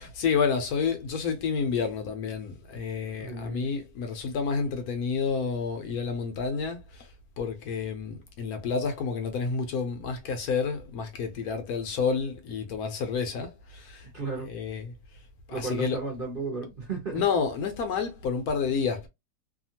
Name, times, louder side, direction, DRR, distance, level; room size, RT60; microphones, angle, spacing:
voice 1, 0.0-7.1 7.4-14.1 14.5-14.8 15.6-16.0 17.1-19.1, left 5 dB, 70° left, 1.0 m, -29 dB
voice 2, 3.0-3.7 14.0-14.5 15.5-17.2, right 4 dB, 45° right, 0.7 m, -34 dB
2.8 x 2.4 x 2.7 m
omnidirectional pair, 1.8 m